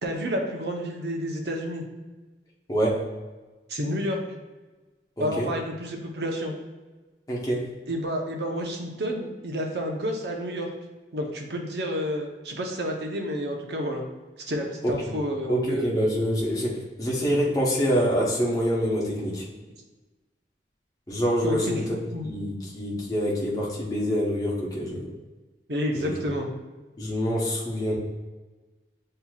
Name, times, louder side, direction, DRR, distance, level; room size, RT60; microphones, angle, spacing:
voice 1, 0.0-1.8 3.7-4.2 5.2-6.5 7.9-10.7 11.1-14.0 14.5-15.9 21.4-22.3 25.7-26.5, equal, 70° right, 1 dB, 0.8 m, -30 dB
voice 2, 2.7-3.1 5.2-5.5 7.3-7.7 14.8-15.1 15.5-19.4 21.1-21.8 22.2-25.1 25.9-26.2 27.0-28.0, equal, 20° left, -5 dB, 0.9 m, -26 dB
7.5 x 2.8 x 2.3 m, 1.2 s
head